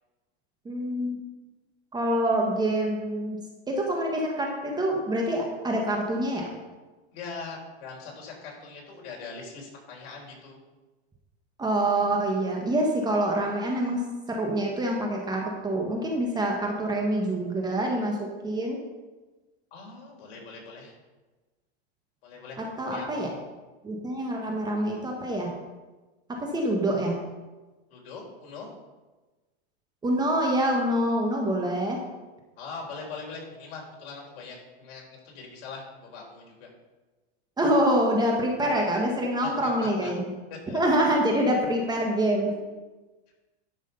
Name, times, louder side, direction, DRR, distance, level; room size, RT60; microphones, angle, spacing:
voice 1, 0.6-1.2 1.9-3.4 3.7-6.5 11.6-14.0 14.3-18.8 22.8-23.3 23.8-25.5 26.4-27.2 30.0-32.0 37.6-40.3 40.7-42.5, right 1 dB, 10° right, 0 dB, 1.4 m, -26 dB
voice 2, 7.1-10.6 19.7-20.9 22.2-22.6 22.8-23.4 27.9-28.7 32.6-36.7 38.6-38.8 39.8-40.1 40.5-40.8 42.5-42.6, left 4 dB, 60° left, -1 dB, 4.1 m, -41 dB
11.5 x 6.2 x 5.6 m, 1.2 s
supercardioid pair, 145°, 33 cm